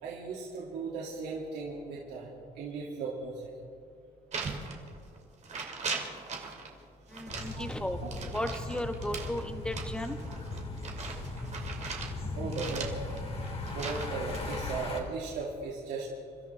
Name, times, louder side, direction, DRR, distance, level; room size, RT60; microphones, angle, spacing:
voice 1, 0.0-3.5 5.6-5.7 7.4-7.7 8.0-8.1 12.3-13.1 13.7-16.1, right 4 dB, 85° right, -5 dB, 2.6 m, -37 dB
sound 1, 4.3-5.2 5.4-6.7 7.1-12.1 12.5-14.6, right 5 dB, 45° right, 2.5 m, -39 dB
voice 2, 7.1-8.0 8.3-10.2, left 1 dB, 5° left, 7 dB, 1.2 m, -35 dB
sound 2, 7.3-15.0, left 2 dB, 35° left, 2.7 m, -38 dB
28.5 x 13.0 x 3.5 m, 2.3 s
cardioid pair, 110°, 17 cm